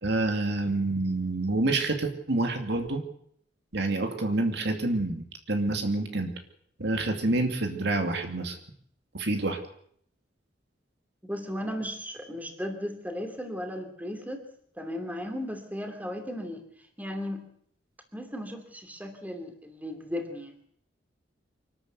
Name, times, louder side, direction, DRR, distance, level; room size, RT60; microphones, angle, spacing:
voice 1, 0.0-3.0 3.7-6.3 6.8-8.6 9.1-9.6, right 2 dB, 65° right, 4 dB, 2.5 m, -27 dB
voice 2, 11.3-14.4 14.8-16.6 17.0-17.5 18.1-20.6, equal, 10° right, 5 dB, 2.7 m, -36 dB
25.0 x 12.5 x 8.1 m, 0.66 s
head